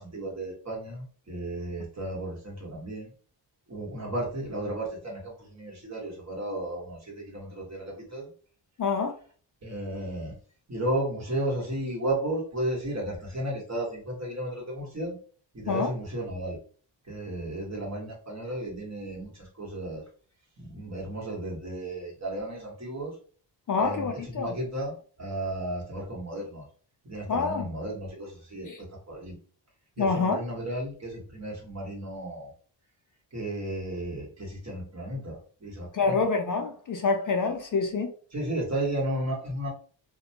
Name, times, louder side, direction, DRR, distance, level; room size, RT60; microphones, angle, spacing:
voice 1, 0.0-3.1 3.7-8.3 9.6-10.3 10.7-15.2 15.5-16.6 17.1-20.0 20.6-23.1 23.8-26.7 27.0-29.4 30.0-32.5 33.3-36.2 38.3-39.7, right 1 dB, 35° right, 1.4 m, -34 dB
voice 2, 8.8-9.1 15.7-15.9 23.7-24.5 27.3-27.7 28.6-28.8 30.0-30.4 35.9-38.1, left 4 dB, 45° left, 0.4 m, -26 dB
2.5 x 2.2 x 2.7 m
cardioid pair, 75°, 46 cm